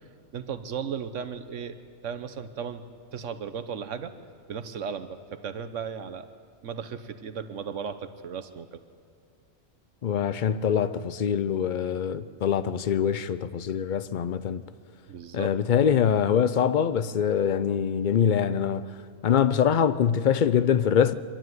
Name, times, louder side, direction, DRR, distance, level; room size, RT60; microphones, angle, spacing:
voice 1, 0.3-1.8 2.0-2.8 3.1-4.1 4.5-6.3 6.6-8.8 15.1-15.5, right 7 dB, 65° right, 1.2 m, -35 dB
voice 2, 10.0-14.6 15.3-19.0 19.2-21.1, left 8 dB, 50° left, 0.6 m, -24 dB
24.5 x 12.0 x 9.4 m
omnidirectional pair, 1.4 m